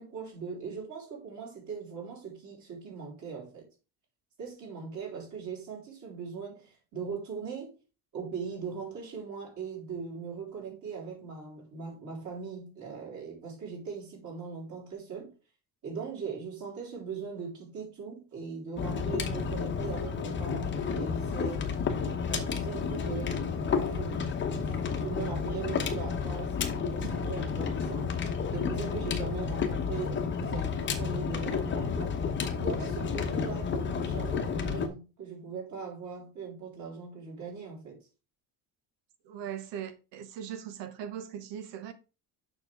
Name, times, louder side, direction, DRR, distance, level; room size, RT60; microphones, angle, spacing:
voice 1, 0.0-3.7 4.4-7.8 8.1-15.3 15.8-21.7 22.0-28.2 28.5-32.2 32.5-38.1, right 5 dB, 45° right, 3.8 m, -40 dB
sound 1, 18.8-34.9, left 6 dB, 25° left, 0.9 m, -31 dB
voice 2, 39.3-41.9, right 9 dB, 90° right, 1.3 m, -39 dB
6.9 x 6.2 x 3.4 m
cardioid pair, 170°, 42 cm